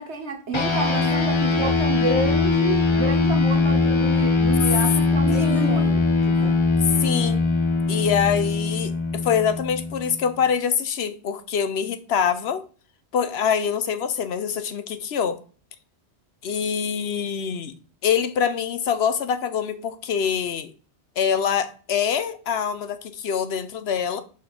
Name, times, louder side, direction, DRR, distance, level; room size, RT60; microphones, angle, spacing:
voice 1, 0.0-6.6, right 2 dB, 75° right, 1.6 m, -29 dB
sound 1, 0.5-10.3, left 3 dB, 30° left, 0.9 m, -21 dB
voice 2, 5.3-6.0 7.0-7.4 7.9-12.6 13.1-15.4 16.4-17.7 18.0-20.7 21.2-24.2, left 7 dB, 70° left, 0.9 m, -25 dB
5.3 x 4.2 x 5.1 m
omnidirectional pair, 1.2 m